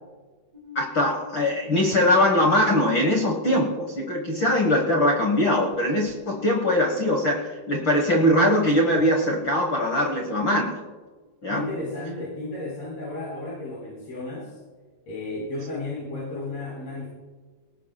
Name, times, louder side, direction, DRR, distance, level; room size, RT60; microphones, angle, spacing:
Alarm, 0.5-9.5, left 4 dB, 40° right, 1.6 m, -44 dB
voice 1, 0.7-10.8 11.4-11.7, left 1 dB, 80° left, 1 dB, 1.0 m, -22 dB
voice 2, 11.5-14.6 15.1-17.1, left 2 dB, 40° left, -6 dB, 5.2 m, -33 dB
23.5 x 19.0 x 2.3 m, 1.4 s
omnidirectional pair, 4.4 m